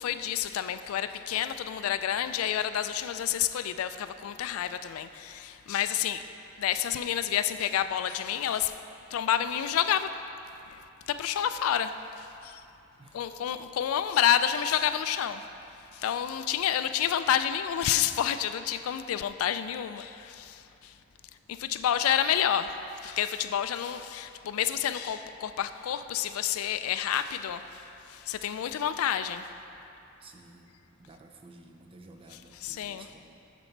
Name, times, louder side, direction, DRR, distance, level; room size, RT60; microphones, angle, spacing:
voice 1, 0.0-6.3 6.6-8.8 9.1-10.1 10.6-12.7 13.1-15.5 15.7-21.0 21.5-29.5 32.6-33.1, left 10 dB, 85° left, 11 dB, 0.3 m, -29 dB
voice 2, 30.2-33.4, right 2 dB, 25° right, 3 dB, 0.5 m, -53 dB
7.1 x 6.8 x 4.5 m, 2.8 s
head